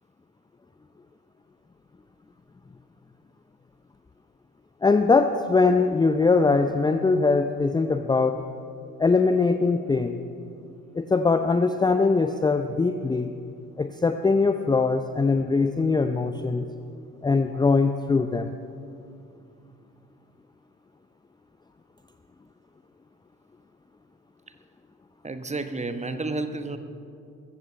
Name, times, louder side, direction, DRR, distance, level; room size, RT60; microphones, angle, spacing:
voice 1, 4.8-8.4 9.0-10.2 10.9-13.3 13.8-16.7 17.2-18.5, left 4 dB, 10° left, 8 dB, 0.5 m, -22 dB
voice 2, 25.2-26.8, right 2 dB, 15° right, 9 dB, 1.1 m, -31 dB
22.0 x 15.0 x 3.3 m, 2.5 s
figure-of-eight pair, 45°, 40 cm